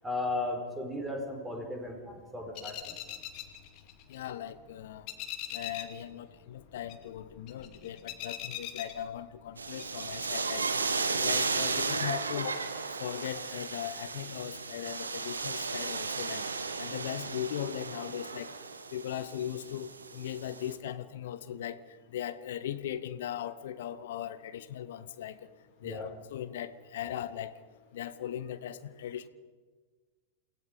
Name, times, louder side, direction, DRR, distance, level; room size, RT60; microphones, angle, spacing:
voice 1, 0.0-2.9 25.8-26.1, left 2 dB, 10° right, 3 dB, 4.8 m, -35 dB
sound 1, 2.6-4.6 4.8-6.0 6.3-9.5 9.8-10.4, left 11 dB, 40° left, 2.3 m, -42 dB
voice 2, 4.1-5.1 5.5-12.6 13.0-16.5 16.8-18.5 18.9-25.5 25.8-27.6 27.9-29.3, left 10 dB, 60° left, 14 dB, 0.9 m, -39 dB
sound 2, 9.6-20.7, right 4 dB, 75° right, 1.6 m, -35 dB
28.5 x 18.0 x 5.1 m, 1.4 s
figure-of-eight pair, 90°, 0 cm